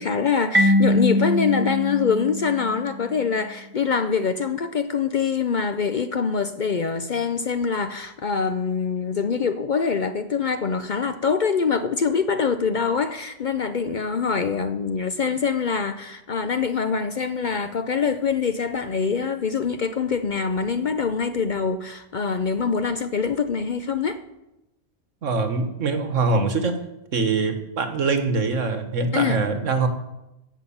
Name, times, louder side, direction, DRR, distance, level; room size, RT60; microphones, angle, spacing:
voice 1, 0.0-24.2 29.1-29.4, left 5 dB, 50° left, 0.6 m, -24 dB
Marimba xylophone, 0.5-3.2, left 1 dB, 10° right, 0.7 m, -22 dB
voice 2, 25.2-26.7 27.1-29.9, right 4 dB, 85° right, 1.6 m, -23 dB
16.5 x 5.7 x 7.1 m
omnidirectional pair, 1.3 m